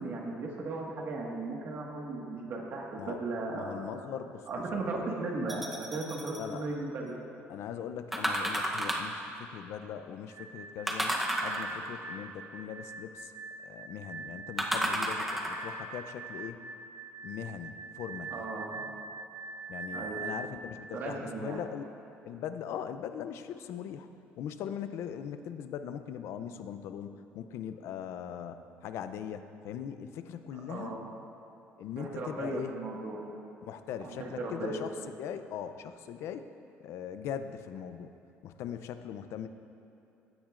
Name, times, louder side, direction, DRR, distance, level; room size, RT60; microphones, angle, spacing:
voice 1, 0.0-4.0 4.5-7.2 18.3-18.9 19.9-20.2 20.9-21.6 30.7-31.1 32.0-33.2 34.0-34.8, right 3 dB, 45° right, -1 dB, 1.6 m, -36 dB
voice 2, 3.5-4.5 4.7-5.0 6.4-6.7 7.5-11.1 11.4-13.3 13.6-16.6 17.2-18.4 19.7-21.9 22.2-24.1 24.4-31.0 31.8-32.7 33.6-36.5 36.8-38.1 38.4-39.5, left 9 dB, 65° left, 10 dB, 0.5 m, -40 dB
sound 1, 5.5-6.4 8.1-9.2 10.9-12.0 14.6-15.7 16.4-16.5, right 1 dB, 5° right, 0.8 m, -32 dB
sound 2, 10.3-20.5, right 4 dB, 80° right, 0.6 m, -43 dB
15.5 x 10.5 x 2.5 m, 2.9 s
cardioid pair, 145°, 5 cm